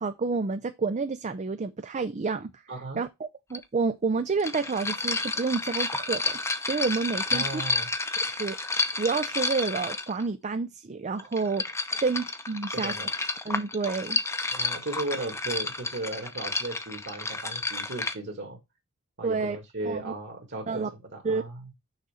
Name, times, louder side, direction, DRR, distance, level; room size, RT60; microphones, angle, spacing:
voice 1, 0.0-2.6 3.0-3.1 3.5-7.6 8.3-8.6 9.0-11.6 12.0-13.0 13.5-14.2 19.2-19.6 19.9-20.1 20.7-20.9 21.2-21.4, right 4 dB, 35° right, 0.5 m, -29 dB
voice 2, 2.7-3.0 7.3-7.9 12.7-13.1 14.5-18.6 19.2-21.7, right 2 dB, 55° right, 1.8 m, -36 dB
sound 1, 3.5-3.6 4.4-10.3 11.2-18.2, left 3 dB, 15° left, 0.7 m, -31 dB
6.5 x 4.1 x 4.9 m
head